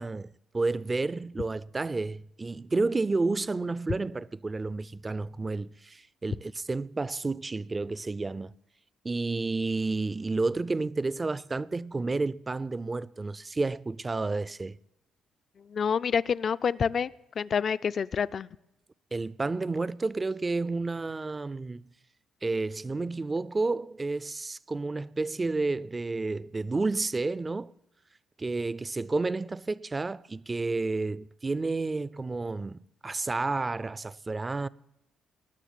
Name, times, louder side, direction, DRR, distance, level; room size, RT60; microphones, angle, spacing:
voice 1, 0.0-8.5 9.0-14.8 19.1-21.8 22.4-27.7 28.4-34.7, right 3 dB, 25° right, 0.4 m, -31 dB
voice 2, 15.7-17.1 17.4-18.5, left 6 dB, 50° left, 0.4 m, -27 dB
19.0 x 6.6 x 9.3 m
cardioid pair, 90°, 0 cm